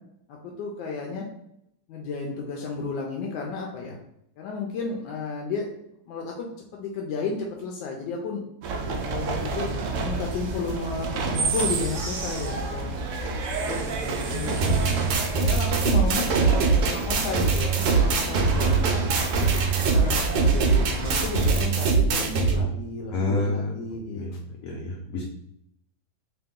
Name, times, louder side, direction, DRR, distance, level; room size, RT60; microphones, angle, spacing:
voice 1, 0.3-1.3 1.9-4.0 4.4-5.7 6.1-8.4 9.0-12.9 13.6-14.7 15.4-16.3 16.8-19.1 19.7-24.3, left 3 dB, 90° left, 0 dB, 1.3 m, -33 dB
sound 1, 8.6-21.7, right 3 dB, 70° right, 0.7 m, -29 dB
sound 2, 14.6-22.6, right 4 dB, 85° right, 1.4 m, -22 dB
voice 2, 23.1-23.8 24.1-24.3 24.6-25.2, left 2 dB, 65° left, -1 dB, 0.9 m, -28 dB
3.0 x 2.9 x 3.5 m, 0.78 s
omnidirectional pair, 1.9 m